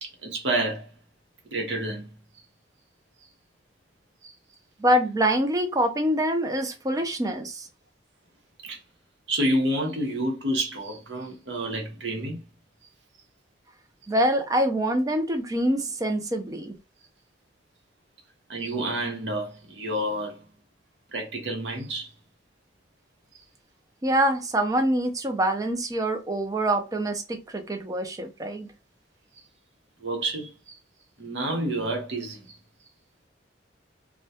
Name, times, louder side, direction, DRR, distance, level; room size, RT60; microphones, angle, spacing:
voice 1, 0.0-0.9 1.5-2.1 4.2-4.3 8.6-8.8 9.3-12.4 18.5-20.4 21.1-22.1 30.0-30.7 31.2-32.6, right 1 dB, 80° right, 0.8 m, -29 dB
voice 2, 4.8-7.7 14.1-16.7 24.0-28.7, right 1 dB, 20° right, 0.4 m, -25 dB
2.2 x 2.1 x 2.7 m
head